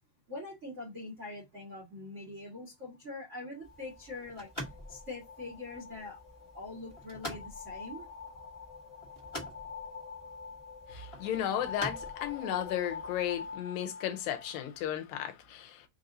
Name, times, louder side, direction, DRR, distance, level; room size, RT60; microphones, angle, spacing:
voice 1, 0.3-4.5 4.9-6.2 6.5-8.1, left 2 dB, 85° right, 0.6 m, -43 dB
sound 1, 3.3-15.0, left 5 dB, 50° left, 1.8 m, -46 dB
sound 2, 3.6-13.5, left 1 dB, 25° left, 0.5 m, -47 dB
voice 2, 10.9-15.9, left 10 dB, 80° left, 2.4 m, -34 dB
5.3 x 2.6 x 3.8 m
omnidirectional pair, 4.0 m